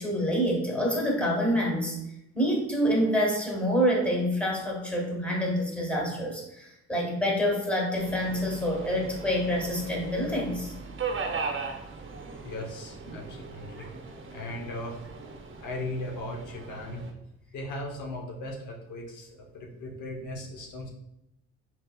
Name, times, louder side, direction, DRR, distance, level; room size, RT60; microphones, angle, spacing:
voice 1, 0.0-2.0 2.3-10.7 13.1-13.2, equal, 5° left, -2 dB, 1.4 m, -27 dB
Subway metro underground, 8.0-17.1, right 4 dB, 40° right, 0.7 m, -38 dB
voice 2, 12.4-13.9 14.3-15.0 15.6-17.0 17.5-20.9, left 1 dB, 80° left, 0 dB, 1.0 m, -38 dB
4.2 x 4.1 x 2.3 m, 0.86 s
cardioid pair, 90°, 30 cm